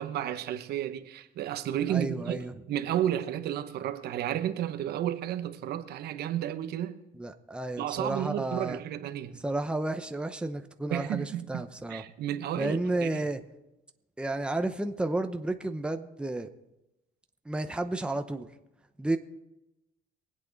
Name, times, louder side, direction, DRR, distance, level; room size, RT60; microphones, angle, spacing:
voice 1, 0.0-7.0 7.8-9.4 10.9-11.6 11.9-13.3, right 11 dB, 70° right, 0.9 m, -32 dB
voice 2, 1.9-2.5 7.2-8.8 9.4-12.0 12.6-13.4 14.2-16.5 17.5-18.5 19.0-19.2, right 2 dB, 5° right, 0.8 m, -32 dB
23.5 x 8.6 x 4.0 m
cardioid pair, 110°, 17 cm